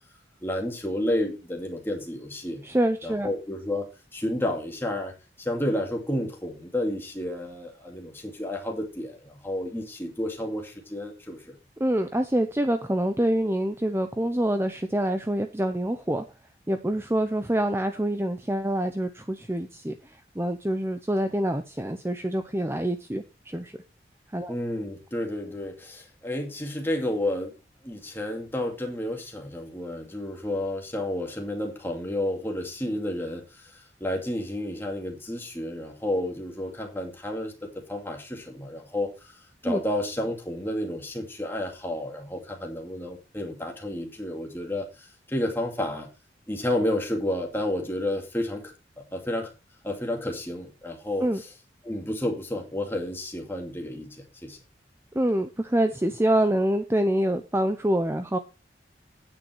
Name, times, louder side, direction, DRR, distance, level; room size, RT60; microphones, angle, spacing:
voice 1, 0.4-2.6 3.0-11.6 24.5-27.5 27.8-46.1 46.5-48.7 49.0-49.5 49.8-51.5 51.8-54.6, left 1 dB, 10° left, 1 dB, 2.3 m, -31 dB
voice 2, 2.6-3.3 11.8-16.2 16.7-23.8 24.3-24.5 39.6-39.8 51.2-51.4 55.1-58.4, right 1 dB, 15° right, 9 dB, 0.6 m, -26 dB
9.3 x 9.0 x 4.5 m, 0.30 s
head